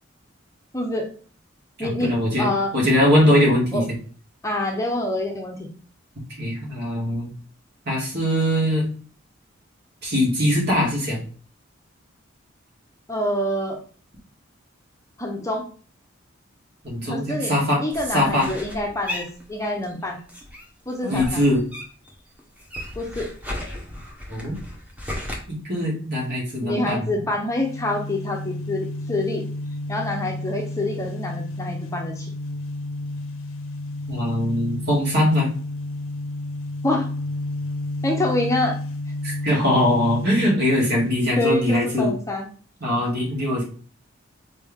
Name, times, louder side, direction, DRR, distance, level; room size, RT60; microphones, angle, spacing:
voice 1, 0.7-1.1 1.8-2.7 3.7-3.8 4.4-5.7 13.1-13.8 15.2-15.7 17.1-17.5 17.8-20.2 20.9-21.4 23.0-23.3 26.6-29.4 29.9-32.3 36.8-37.1 38.0-38.8 41.4-42.5, left 1 dB, 15° left, 1 dB, 0.7 m, -26 dB
voice 2, 1.8-2.5 2.7-3.9 6.4-7.3 7.9-8.9 10.0-11.2 16.8-17.8 18.1-18.5 21.1-21.6 24.3-24.6 25.5-27.1 34.1-35.5 39.2-42.1 42.8-43.6, left 1 dB, 55° right, -3 dB, 2.1 m, -21 dB
sound 1, 17.9-20.0 20.3-22.1 22.4-25.4, left 1 dB, 10° right, 1.1 m, -35 dB
sound 2, 27.4-41.9, left 1 dB, 80° left, 0.6 m, -31 dB
4.4 x 3.4 x 3.5 m, 0.42 s
head